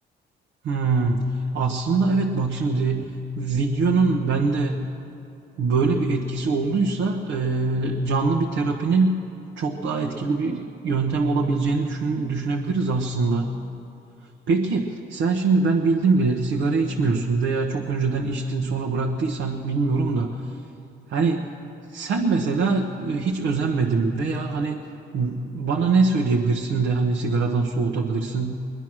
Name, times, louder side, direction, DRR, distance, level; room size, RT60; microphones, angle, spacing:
voice 1, 0.6-4.8 5.6-9.2 9.6-13.5 14.5-20.6 21.1-21.5 21.9-24.8 25.1-28.5, right 4 dB, 80° right, 0 dB, 1.1 m, -23 dB
22.0 x 10.5 x 6.1 m, 2.8 s
cardioid pair, 90°, 20 cm